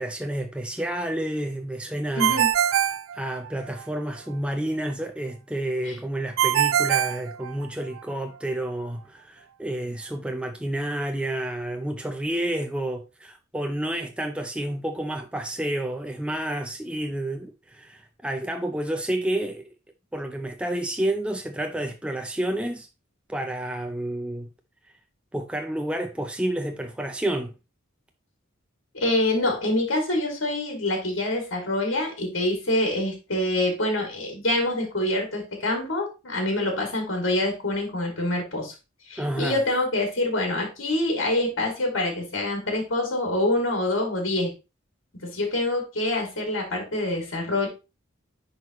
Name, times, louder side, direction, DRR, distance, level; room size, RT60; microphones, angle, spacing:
voice 1, 0.0-2.4 3.1-19.7 20.1-22.9 23.3-24.5 25.3-27.5 39.2-39.6, right 1 dB, 5° right, 0.5 m, -30 dB
voice 2, 2.1-2.5 5.9-6.0 28.9-38.7 39.1-44.5 45.3-47.7, left 1 dB, 70° left, 2.4 m, -26 dB
Ringtone, 2.2-3.8 6.4-8.0, right 10 dB, 80° right, 0.3 m, -23 dB
10.0 x 4.1 x 3.0 m
head